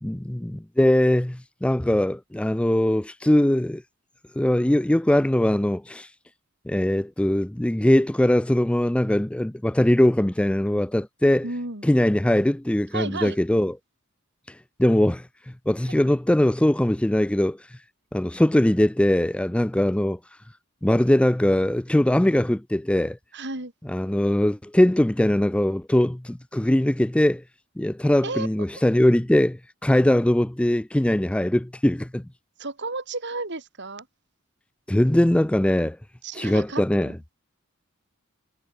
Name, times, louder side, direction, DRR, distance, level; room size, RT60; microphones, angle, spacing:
voice 1, 0.0-3.8 4.4-6.1 6.7-11.5 11.8-13.7 14.5-15.3 15.7-17.7 18.1-20.2 20.8-23.2 23.9-27.4 27.8-32.2 34.9-36.0 36.3-37.1, left 1 dB, 5° left, 0.4 m, -21 dB
voice 2, 11.4-11.9 12.9-13.4 23.3-23.7 28.2-28.5 32.6-34.1 36.2-37.1, right 3 dB, 60° right, 4.7 m, -32 dB
head